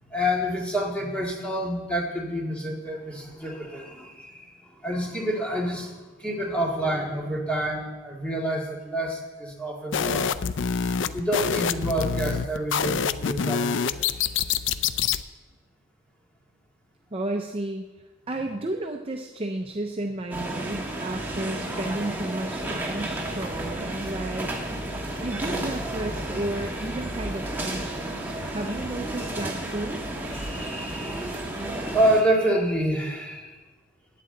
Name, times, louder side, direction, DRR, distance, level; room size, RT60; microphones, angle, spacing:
voice 1, 0.0-10.3 11.1-14.3 30.3-33.6, right 1 dB, 5° left, -2 dB, 1.9 m, -28 dB
sound 1, 9.9-15.2, left 7 dB, 60° left, 0.4 m, -26 dB
voice 2, 17.1-17.9 18.3-24.5 25.2-30.0, right 1 dB, 25° right, 3 dB, 0.5 m, -32 dB
sound 2, 20.3-32.2, right 1 dB, 10° right, 1.3 m, -32 dB
15.0 x 9.4 x 3.9 m, 1.2 s
head